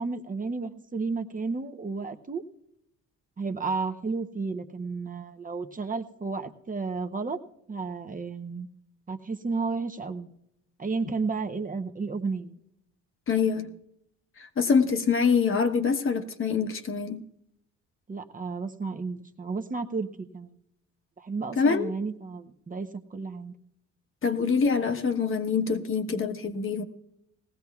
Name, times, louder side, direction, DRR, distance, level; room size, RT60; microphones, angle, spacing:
voice 1, 0.0-2.4 3.4-7.4 7.7-8.7 9.1-10.3 10.8-12.5 18.1-20.1 20.3-20.5 21.2-23.5, right 4 dB, 25° right, 6 dB, 0.8 m, -32 dB
voice 2, 13.3-13.7 14.4-17.2 21.6-21.9 24.2-26.8, left 5 dB, 45° left, 7 dB, 1.1 m, -25 dB
19.0 x 15.0 x 2.4 m, 0.80 s
cardioid pair, 90°, 30 cm